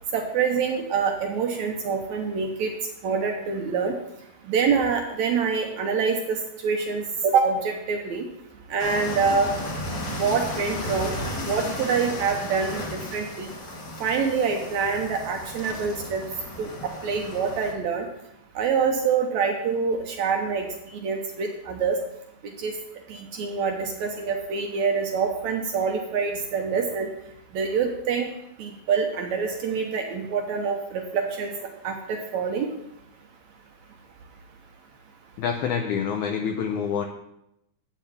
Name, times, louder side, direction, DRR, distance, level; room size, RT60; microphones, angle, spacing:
voice 1, 0.1-2.7 3.0-4.0 4.5-6.4 6.6-8.3 8.7-9.5 10.1-11.1 11.4-13.5 14.0-16.2 16.6-18.1 18.5-20.7 21.0-22.0 22.6-22.7 23.1-27.1 27.5-28.3 28.6-31.5 31.8-32.7, right 5 dB, 75° right, 3 dB, 1.7 m, -25 dB
sound 1, 8.8-17.7, left 1 dB, 45° left, 1.4 m, -34 dB
voice 2, 35.4-37.1, left 7 dB, 90° left, 4 dB, 1.7 m, -27 dB
12.0 x 8.3 x 3.6 m, 0.81 s
omnidirectional pair, 4.4 m